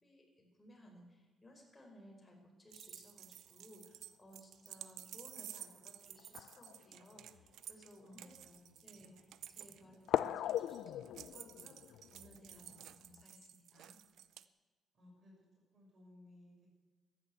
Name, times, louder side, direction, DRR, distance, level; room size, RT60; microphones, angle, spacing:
voice 1, 0.0-8.4 8.8-14.0, equal, 20° left, 0 dB, 4.8 m, -60 dB
sound 1, 2.7-14.4, right 11 dB, 75° right, 0.6 m, -53 dB
sound 2, 4.8-4.9 6.2-7.5 8.2-8.3 10.1-13.2, left 12 dB, 80° left, 0.4 m, -40 dB
voice 2, 8.0-8.9 9.6-9.9 14.9-15.3 15.7-16.7, left 2 dB, 50° right, -2 dB, 6.1 m, -61 dB
14.0 x 10.0 x 8.0 m, 1.4 s
cardioid pair, 90°, 0 cm